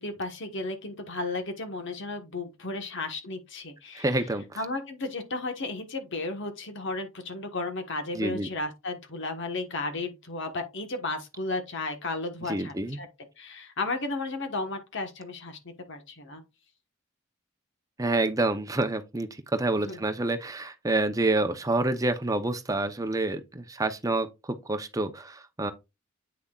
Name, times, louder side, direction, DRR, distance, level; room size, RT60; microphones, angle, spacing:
voice 1, 0.0-4.2 4.5-13.1 13.4-16.4 19.8-20.0, left 2 dB, 60° left, 1.3 m, -34 dB
voice 2, 3.9-4.4 8.1-8.5 12.5-13.0 18.0-25.7, right 2 dB, 15° right, 0.7 m, -28 dB
8.4 x 6.1 x 2.4 m
head